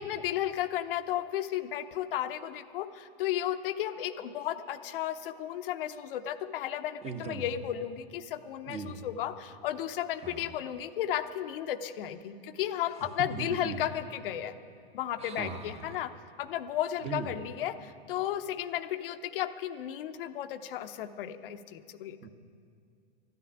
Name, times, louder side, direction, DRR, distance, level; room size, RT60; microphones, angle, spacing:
voice 1, 0.0-14.5 14.9-16.1 16.4-22.2, left 11 dB, 60° left, 8 dB, 0.8 m, -34 dB
voice 2, 7.0-7.5 8.7-9.0 10.2-10.5 13.3-13.8 15.2-16.0 17.0-17.3 22.2-22.3, right 4 dB, 20° right, 6 dB, 1.1 m, -38 dB
12.5 x 9.5 x 9.8 m, 2.4 s
hypercardioid pair, 120°, 31 cm